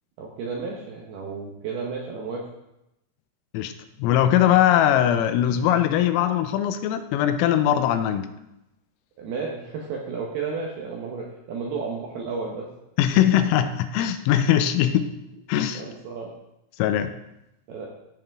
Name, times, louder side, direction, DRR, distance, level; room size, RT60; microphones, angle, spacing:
voice 1, 0.2-2.5 9.2-12.7 15.7-16.3 17.7-17.9, right 5 dB, 75° right, -2 dB, 2.4 m, -32 dB
voice 2, 4.0-8.3 13.0-15.1 15.5-15.8 16.8-17.1, left 11 dB, 90° left, 9 dB, 3.3 m, -21 dB
16.0 x 5.7 x 3.6 m, 0.88 s
omnidirectional pair, 5.9 m